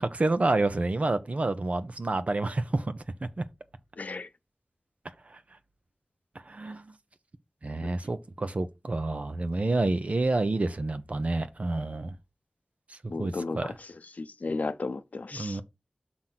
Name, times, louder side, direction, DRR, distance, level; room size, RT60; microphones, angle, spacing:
voice 1, 0.0-3.0 3.4-3.5 5.3-5.4 6.4-6.9 7.6-12.2 12.9-13.7 15.3-15.6, right 2 dB, 60° right, 0.9 m, -29 dB
voice 2, 4.0-4.3 7.8-7.9 13.1-13.7 14.2-15.6, left 3 dB, 75° left, 0.7 m, -34 dB
6.2 x 3.8 x 5.8 m
wide cardioid pair, 60°, 3 cm